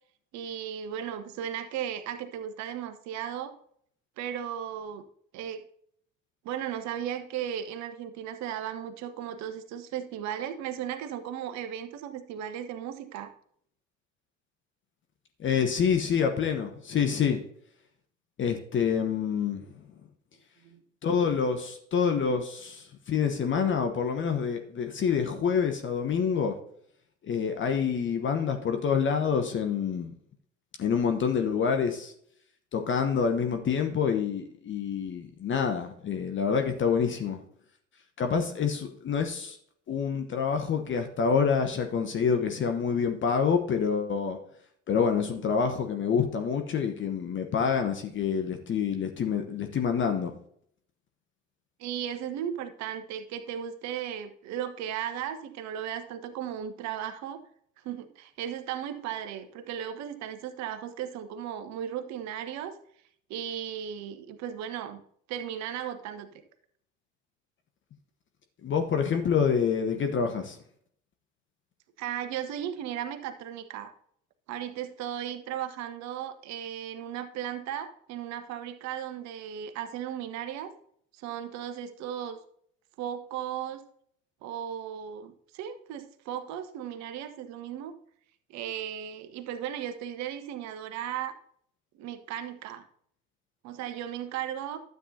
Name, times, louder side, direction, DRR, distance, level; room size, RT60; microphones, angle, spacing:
voice 1, 0.3-3.5 4.2-5.0 5.3-5.6 6.4-13.3 20.6-20.8 51.8-57.4 57.8-62.8 63.3-65.0 65.3-66.4 72.0-73.9 74.5-80.7 81.2-82.4 83.0-83.8 84.4-87.9 88.5-91.3 91.9-92.9 93.6-94.8, right 9 dB, 45° right, 9 dB, 1.1 m, -36 dB
voice 2, 15.4-17.4 18.4-19.6 21.0-26.5 27.2-30.1 30.8-32.1 32.7-37.4 38.2-39.6 39.9-44.4 44.9-50.3 68.6-70.6, left 6 dB, 30° left, 5 dB, 1.1 m, -27 dB
12.5 x 8.0 x 2.8 m, 0.65 s
figure-of-eight pair, 65°, 37 cm